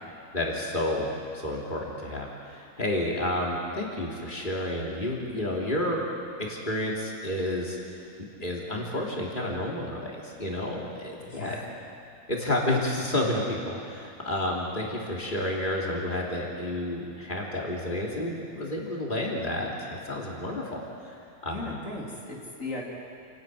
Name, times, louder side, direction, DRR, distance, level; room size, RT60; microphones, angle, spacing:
voice 1, 0.3-1.1 1.3-6.1 6.4-7.8 8.2-11.6 12.3-21.1 21.4-21.8, left 1 dB, 35° left, -3 dB, 3.5 m, -30 dB
voice 2, 11.2-11.6 21.5-22.8, left 2 dB, 60° left, -3 dB, 3.5 m, -37 dB
28.5 x 12.0 x 9.4 m, 2.6 s
omnidirectional pair, 1.5 m